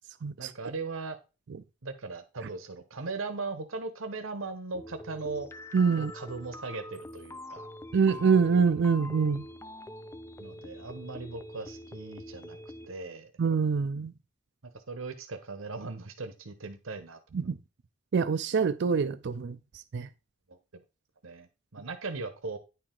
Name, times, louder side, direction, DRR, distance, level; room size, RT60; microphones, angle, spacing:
voice 1, 0.4-1.2 1.8-5.5 6.0-7.7 10.4-12.6 12.9-13.3 14.7-17.2 20.5-20.6 21.2-22.6, right 3 dB, 80° right, 1.0 m, -38 dB
sound 1, 4.7-12.9, left 1 dB, 15° left, 0.3 m, -44 dB
voice 2, 5.7-6.1 7.9-9.4 13.4-14.1 17.3-17.6 18.1-19.6 19.9-20.1, right 5 dB, 60° right, 0.4 m, -25 dB
9.6 x 4.6 x 3.8 m
head